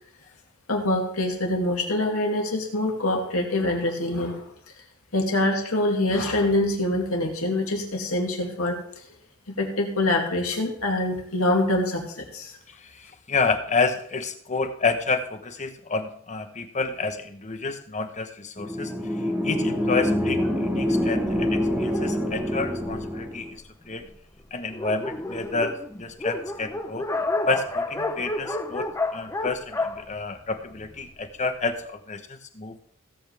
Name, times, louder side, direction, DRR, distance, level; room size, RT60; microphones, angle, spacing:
voice 1, 0.7-4.4 5.1-8.8 9.5-12.6, left 1 dB, 85° left, 0 dB, 2.5 m, -25 dB
voice 2, 12.7-18.9 19.2-24.0 24.5-27.1 27.5-32.8, left 4 dB, 35° left, 8 dB, 1.0 m, -29 dB
sound 1, 18.6-23.5, equal, 5° right, 1.5 m, -26 dB
Dog, 20.3-23.3 24.0-24.1 24.4-24.5 24.7-31.1, left 2 dB, 15° left, 0.7 m, -31 dB
16.5 x 8.1 x 3.4 m, 0.63 s
head